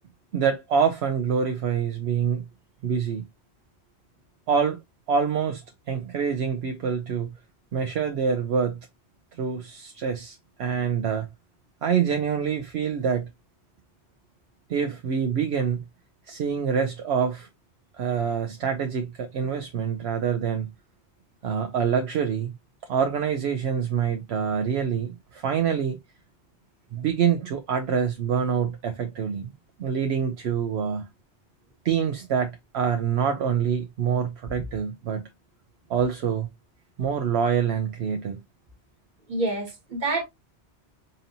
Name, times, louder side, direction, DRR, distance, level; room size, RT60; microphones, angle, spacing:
voice 1, 0.3-2.4 2.8-3.2 4.5-4.8 5.1-7.3 7.7-8.8 9.4-11.3 11.8-13.3 14.7-15.8 16.3-17.5 18.0-20.7 21.4-22.5 22.9-26.0 26.9-29.5 29.8-31.1 31.8-35.2 35.9-36.5 37.0-38.4, right 7 dB, 70° right, 0.9 m, -26 dB
voice 2, 39.3-40.2, right 2 dB, 40° right, 1.5 m, -27 dB
5.3 x 2.8 x 2.6 m
omnidirectional pair, 1.2 m